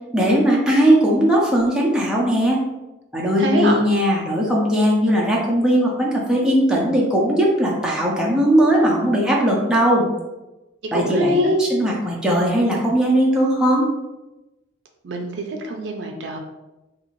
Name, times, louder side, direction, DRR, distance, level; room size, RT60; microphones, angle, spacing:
voice 1, 0.1-2.6 3.1-10.1 10.9-11.4 11.7-13.9, equal, 5° right, -4 dB, 0.5 m, -18 dB
voice 2, 3.4-3.8 10.9-11.6 15.0-16.4, equal, 65° right, 3 dB, 0.4 m, -23 dB
2.8 x 2.5 x 2.9 m, 1.0 s
head